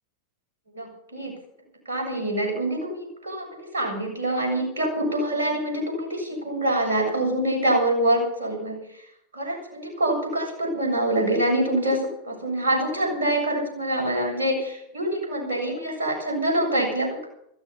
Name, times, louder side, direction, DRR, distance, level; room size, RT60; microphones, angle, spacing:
voice 1, 0.7-1.4 1.9-8.8 9.3-17.3, right 1 dB, 70° right, 0 dB, 7.3 m, -25 dB
15.0 x 14.5 x 5.7 m, 0.73 s
figure-of-eight pair, 90°, 0 cm